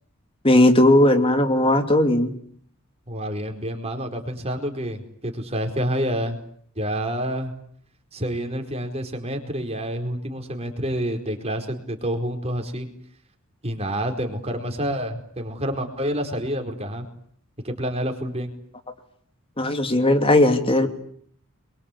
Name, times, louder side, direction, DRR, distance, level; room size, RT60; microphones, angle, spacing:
voice 1, 0.4-2.3 19.6-20.9, left 1 dB, 25° left, 7 dB, 2.7 m, -17 dB
voice 2, 3.1-6.4 6.8-7.5 8.1-12.9 13.6-17.0 17.6-18.5, equal, 30° right, 4 dB, 4.6 m, -28 dB
28.5 x 23.5 x 8.5 m, 0.62 s
head